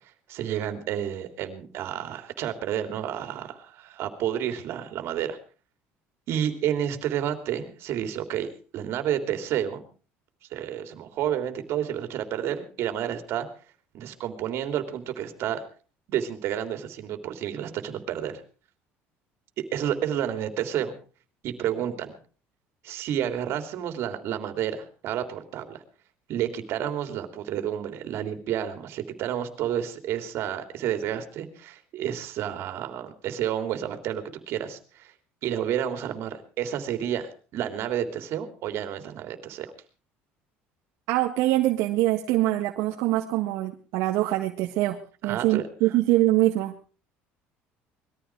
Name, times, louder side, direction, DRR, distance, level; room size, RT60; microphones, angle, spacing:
voice 1, 0.3-5.4 6.3-8.5 8.7-9.8 10.5-13.5 13.9-15.6 16.1-18.4 19.7-20.9 21.4-22.1 22.8-25.8 26.3-35.1 35.4-39.7 45.2-46.0, right 10 dB, 60° right, 7 dB, 3.3 m, -30 dB
voice 2, 41.1-45.0 45.2-46.7, right 16 dB, 80° right, 2 dB, 1.7 m, -24 dB
21.0 x 14.0 x 4.8 m, 0.39 s
cardioid pair, 125°, 5 cm